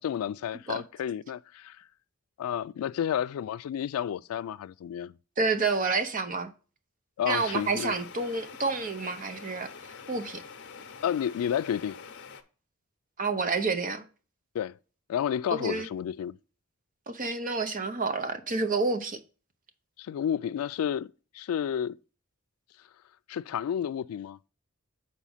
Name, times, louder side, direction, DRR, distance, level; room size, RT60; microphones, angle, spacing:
voice 1, 0.0-1.8 2.4-5.1 7.2-7.9 11.0-12.0 14.5-14.8 15.1-16.4 20.0-22.0 23.3-24.4, left 9 dB, 85° left, 0.3 m, -31 dB
voice 2, 5.4-6.5 7.2-9.7 10.1-10.4 13.2-14.0 15.6-15.9 17.1-19.2, right 4 dB, 40° right, 0.8 m, -29 dB
sound 1, 7.3-12.4, left 6 dB, 55° left, 0.7 m, -46 dB
6.1 x 4.1 x 5.6 m
head